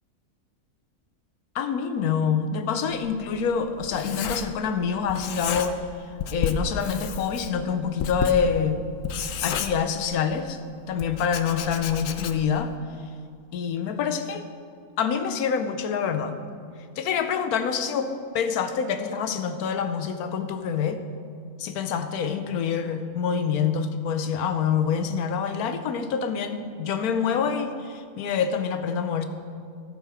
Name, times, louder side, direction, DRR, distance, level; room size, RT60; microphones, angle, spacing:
voice 1, 1.5-5.8 6.3-8.8 9.4-10.6 10.9-12.7 13.5-14.4 15.0-16.4 17.0-21.0 21.6-29.2, left 6 dB, 85° left, 9 dB, 1.2 m, -26 dB
Writing, 2.9-4.8 5.1-5.9 6.2-10.4 11.0-12.6, left 7 dB, 70° left, 0.9 m, -32 dB
13.5 x 6.8 x 4.8 m, 2.3 s
omnidirectional pair, 1.5 m